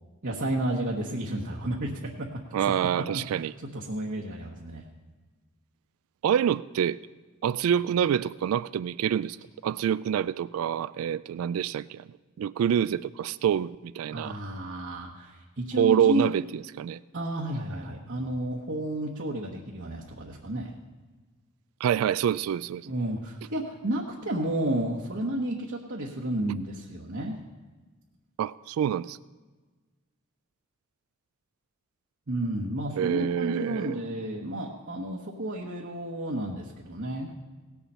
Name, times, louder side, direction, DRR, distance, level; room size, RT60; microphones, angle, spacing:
voice 1, 0.2-2.3 2.6-4.8 14.1-16.3 17.1-20.7 22.8-27.4 32.3-37.3, right 1 dB, 60° right, -3 dB, 1.2 m, -32 dB
voice 2, 2.5-3.5 6.2-7.0 7.4-9.4 9.6-12.0 12.4-14.4 15.8-16.4 16.8-17.0 21.8-22.9 28.4-29.2 33.0-34.0, right 9 dB, 85° right, 17 dB, 0.3 m, -26 dB
18.0 x 7.1 x 5.5 m, 1.3 s
head